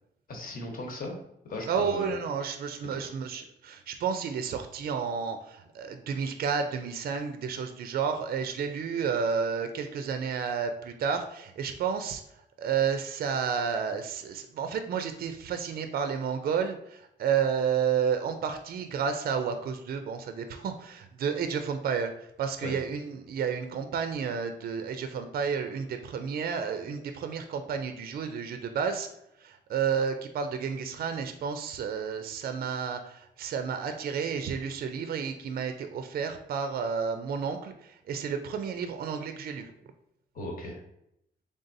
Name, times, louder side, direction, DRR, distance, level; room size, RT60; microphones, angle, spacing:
voice 1, 0.3-1.2 1.4-2.1 2.9-3.0 22.6-22.7 40.3-40.8, left 1 dB, 50° left, 0 dB, 1.1 m, -37 dB
voice 2, 1.7-12.2 12.6-22.1 22.4-29.1 29.4-39.7, right 6 dB, 55° right, 7 dB, 0.4 m, -31 dB
3.9 x 3.5 x 2.6 m, 0.79 s
cardioid pair, 130°, 18 cm